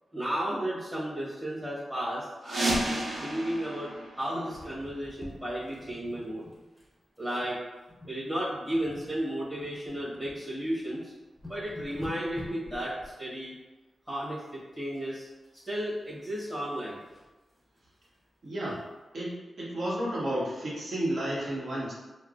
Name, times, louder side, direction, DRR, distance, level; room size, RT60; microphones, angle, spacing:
voice 1, 0.1-6.4 7.2-7.6 8.0-11.1 11.4-12.9 13.2-13.5 14.1-15.3 15.6-17.0, equal, 10° right, -9 dB, 1.2 m, -33 dB
sound 1, 2.4-5.0, right 1 dB, 85° right, 0.8 m, -32 dB
sound 2, 4.5-6.9 7.2-7.4 7.9-8.2 8.5-10.4 10.9-11.0 11.2-13.1 14.9-15.5 15.9-17.3 17.8-17.9 18.2-18.3 18.7-18.8, left 1 dB, 10° left, 0.7 m, -48 dB
voice 2, 18.4-18.8 19.1-21.9, right 1 dB, 55° right, -7 dB, 1.2 m, -32 dB
4.5 x 2.1 x 2.4 m, 1.1 s
wide cardioid pair, 140°, 0 cm